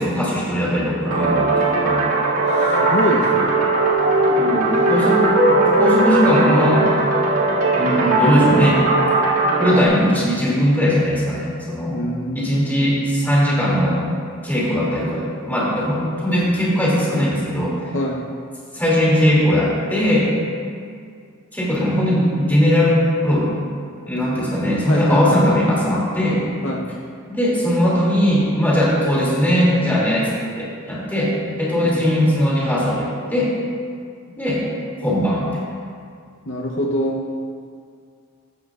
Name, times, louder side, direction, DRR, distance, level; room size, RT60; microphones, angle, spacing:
voice 1, 0.0-2.0 4.4-5.3 5.6-6.9 7.7-8.8 9.6-12.0 12.3-14.0 14.4-17.8 18.7-20.3 21.5-23.5 24.1-26.4 27.3-30.3 30.6-31.3 31.6-33.5 34.4-34.6 35.0-35.6, equal, 10° left, -6 dB, 2.5 m, -19 dB
sound 1, 1.0-9.8, right 2 dB, 70° right, 2.2 m, -18 dB
voice 2, 2.5-3.6 11.9-12.8 17.9-18.2 24.9-25.8 26.6-26.9 31.8-32.1 36.5-37.2, equal, 60° left, -1 dB, 0.8 m, -25 dB
15.0 x 11.5 x 2.4 m, 2.2 s
head